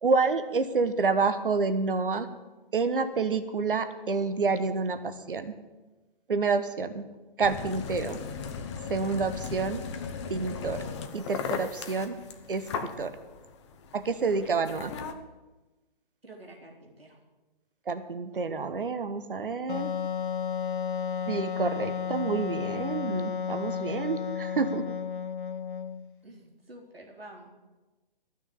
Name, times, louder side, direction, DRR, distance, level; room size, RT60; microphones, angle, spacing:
voice 1, 0.0-2.3 2.7-5.5 6.3-7.1 7.4-8.2 8.9-9.9 10.3-10.8 11.1-12.2 12.5-13.1 13.9-14.9 17.9-19.9 21.3-25.0, right 4 dB, 65° right, 12 dB, 1.2 m, -28 dB
sound 1, 7.4-15.1, left 6 dB, 30° left, 0.9 m, -37 dB
voice 2, 16.2-17.2 26.2-27.5, right 1 dB, 85° right, 0 dB, 3.5 m, -48 dB
Wind instrument woodwind instrument, 19.7-26.1, left 7 dB, 60° left, 0.7 m, -33 dB
13.5 x 6.4 x 8.5 m, 1.1 s
figure-of-eight pair, 135°, 29 cm